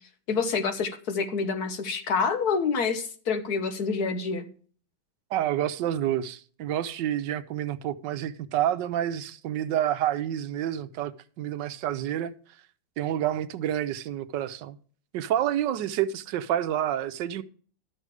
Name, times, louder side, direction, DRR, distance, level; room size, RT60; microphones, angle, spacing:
voice 1, 0.3-4.4, left 5 dB, 60° left, 1.6 m, -27 dB
voice 2, 5.3-12.3 13.0-14.8 15.1-17.4, right 11 dB, 75° right, 1.3 m, -28 dB
12.5 x 6.7 x 4.8 m
omnidirectional pair, 2.0 m